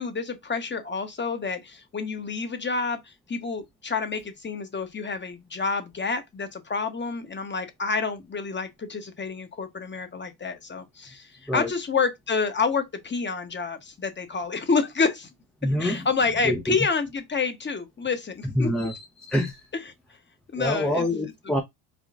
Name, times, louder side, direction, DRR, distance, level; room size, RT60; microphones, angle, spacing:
voice 1, 0.0-15.3 15.6-18.7 19.7-19.9 20.5-21.1 21.4-21.5, left 4 dB, 20° left, 0.9 m, -28 dB
voice 2, 15.6-16.0 16.4-16.8 18.6-19.6 20.6-21.6, left 1 dB, ahead, 0.5 m, -26 dB
5.0 x 2.4 x 2.4 m
supercardioid pair, 75°, 50 cm